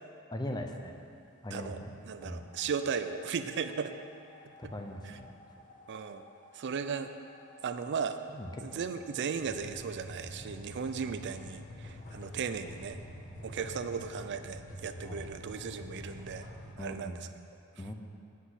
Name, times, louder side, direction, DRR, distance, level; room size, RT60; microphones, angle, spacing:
voice 1, 0.3-1.0 1.4-2.5 4.6-5.6 8.3-8.8 15.0-15.3 16.8-17.3 17.8-17.9, left 1 dB, 20° left, 4 dB, 0.6 m, -41 dB
voice 2, 2.1-3.9 4.6-4.7 5.0-5.2 5.9-6.3 6.5-7.1 7.6-8.2 8.6-13.0 13.4-16.5 16.8-17.2, right 6 dB, 50° right, 9 dB, 0.4 m, -36 dB
sound 1, 2.3-16.7, left 1 dB, 35° left, 1.2 m, -48 dB
8.3 x 5.9 x 7.9 m, 2.5 s
head